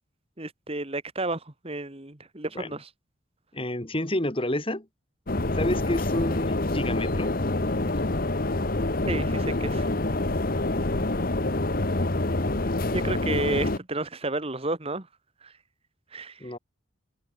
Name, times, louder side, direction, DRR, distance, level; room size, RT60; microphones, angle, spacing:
voice 1, 0.4-2.9 9.1-9.9 12.9-15.1 15.4-15.5 16.1-16.5, right 2 dB, 30° right, 1.6 m, -31 dB
voice 2, 3.5-4.9 5.5-7.3 16.4-16.6, left 1 dB, 25° left, 2.3 m, -29 dB
sound 1, 5.3-13.8, left 2 dB, 45° left, 1.2 m, -26 dB
head